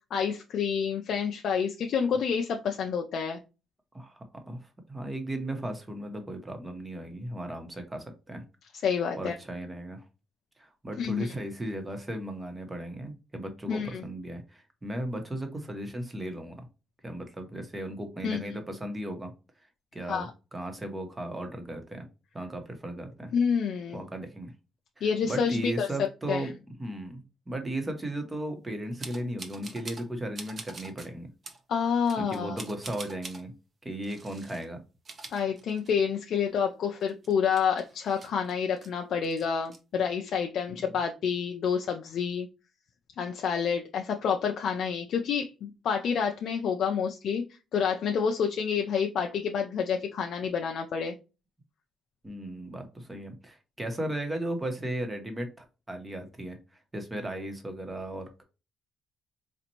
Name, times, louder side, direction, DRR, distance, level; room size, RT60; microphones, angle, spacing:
voice 1, 0.1-3.4 8.8-9.4 11.0-11.3 13.7-14.0 18.2-18.4 20.1-20.3 23.3-24.0 25.0-25.9 26.3-26.4 31.7-32.6 35.3-42.5 43.2-47.4 47.7-51.2, left 6 dB, 70° left, 3 dB, 0.4 m, -28 dB
voice 2, 3.9-8.4 9.2-10.0 10.6-16.7 17.0-19.3 19.9-22.1 22.3-23.3 23.9-24.5 25.0-26.5 26.8-31.3 32.2-33.5 33.8-34.8 40.7-40.9 52.2-55.5 55.9-58.4, right 1 dB, 20° right, 5 dB, 1.1 m, -36 dB
sound 1, 29.0-30.1 30.3-31.1 31.4-31.6 32.1-33.4 34.0-34.6 34.9-36.1 36.5-36.6 37.0-38.9 39.2-39.8, right 3 dB, 40° right, 0.9 m, -45 dB
4.1 x 2.5 x 2.9 m, 0.30 s
cardioid pair, 90°, 0 cm